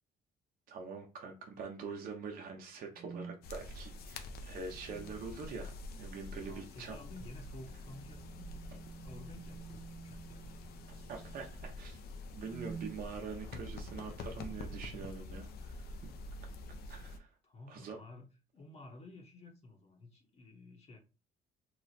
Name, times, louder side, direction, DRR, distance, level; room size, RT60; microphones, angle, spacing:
voice 1, 0.7-7.0 10.9-12.0 12.3-16.1 16.9-17.3 17.7-18.0, right 5 dB, 55° right, 2 dB, 0.7 m, -45 dB
sound 1, 3.0-3.4 4.7-5.3 7.5-11.6 12.3-13.0, right 5 dB, 25° right, 0.3 m, -50 dB
sound 2, 3.4-17.2, left 2 dB, 65° left, 0.6 m, -47 dB
voice 2, 6.4-8.7 9.0-10.5 17.4-21.0, left 2 dB, 40° left, 1 dB, 0.9 m, -53 dB
3.0 x 2.1 x 4.0 m, 0.30 s
cardioid pair, 110°, 17 cm